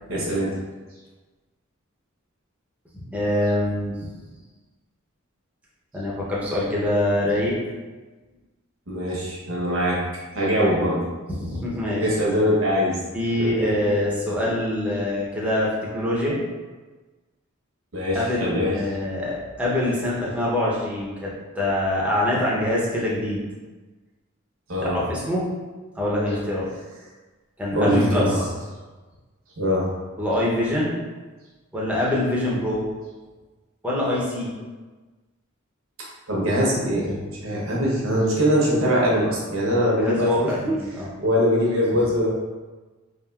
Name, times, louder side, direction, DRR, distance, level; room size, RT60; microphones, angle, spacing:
voice 1, 0.1-0.6 8.9-11.1 12.0-13.0 13.4-13.5 17.9-18.8 24.7-25.0 27.7-28.4 29.6-29.9 36.3-40.7 41.2-42.3, equal, 70° right, -4 dB, 0.8 m, -22 dB
voice 2, 3.1-4.1 5.9-7.6 11.3-12.0 13.1-16.4 18.1-23.4 24.8-25.4 26.0-26.7 27.6-28.5 30.2-31.0 31.7-32.8 33.8-34.5 39.8-41.1, left 1 dB, 5° right, -6 dB, 0.5 m, -24 dB
3.5 x 2.4 x 2.2 m, 1.3 s
head